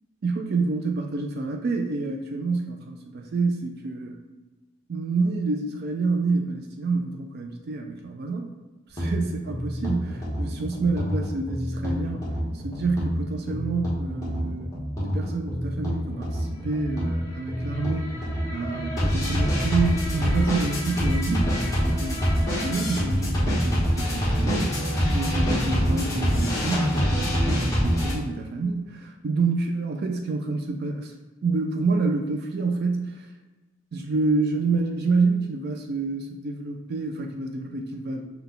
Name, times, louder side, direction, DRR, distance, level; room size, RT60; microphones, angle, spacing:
voice 1, 0.2-4.2 4.9-8.5 8.9-12.3 12.5-31.1 31.4-33.3 33.9-38.3, right 3 dB, 55° right, 3 dB, 0.4 m, -28 dB
sound 1, 9.0-28.1, equal, 15° left, 1.2 m, -26 dB
5.6 x 2.3 x 3.8 m, 1.2 s
head